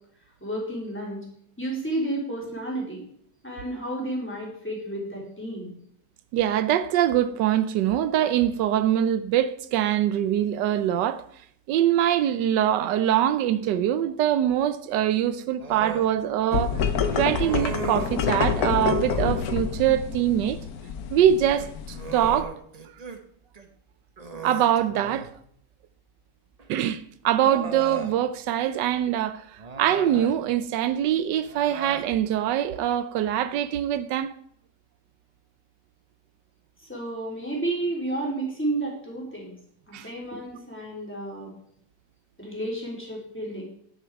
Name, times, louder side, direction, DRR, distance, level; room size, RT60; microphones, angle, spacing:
voice 1, 0.4-1.2 1.6-3.0 3.4-5.7 36.8-39.5 39.9-41.5 42.4-43.6, right 1 dB, 5° left, 3.3 m, -31 dB
voice 2, 6.3-11.2 11.7-16.8 17.1-20.6 21.1-22.5 24.4-25.3 26.7-34.3 39.9-40.1, right 11 dB, 85° right, 1.2 m, -23 dB
Human voice, 15.6-16.1 17.3-18.2 19.0-19.5 21.4-23.2 23.5-23.7 24.2-25.4 26.6-26.7 27.4-28.2 29.6-30.4 31.4-32.1, right 4 dB, 30° right, 0.7 m, -37 dB
sound 1, 16.5-22.4, left 6 dB, 65° left, 1.2 m, -28 dB
10.0 x 8.2 x 4.7 m
omnidirectional pair, 1.9 m